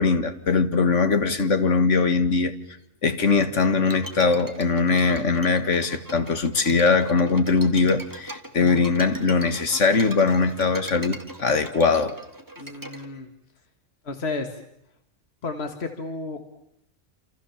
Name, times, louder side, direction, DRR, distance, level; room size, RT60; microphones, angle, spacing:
voice 1, 0.0-2.5 3.0-12.2, left 4 dB, 90° left, 2.0 m, -21 dB
Bowed string instrument, 3.8-13.1, right 1 dB, 15° right, 2.0 m, -40 dB
voice 2, 12.6-13.3 14.0-14.6 15.4-16.4, left 3 dB, 60° left, 2.1 m, -32 dB
28.5 x 27.5 x 7.2 m
omnidirectional pair, 1.2 m